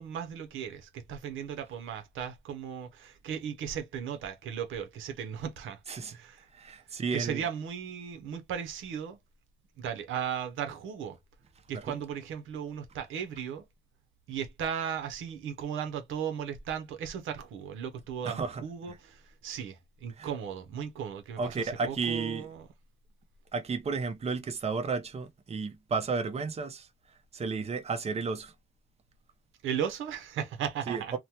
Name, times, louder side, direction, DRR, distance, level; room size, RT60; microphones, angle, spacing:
voice 1, 0.0-5.8 6.1-6.5 7.1-9.2 9.8-11.2 11.7-13.7 14.3-22.7 29.6-31.2, right 8 dB, 80° right, 0.7 m, -36 dB
voice 2, 6.5-7.4 11.7-12.0 18.2-19.0 20.2-20.3 21.4-22.5 23.5-26.9 27.3-28.5 30.9-31.2, right 4 dB, 30° right, 0.7 m, -33 dB
3.0 x 2.1 x 2.7 m
cardioid pair, 90°, 20 cm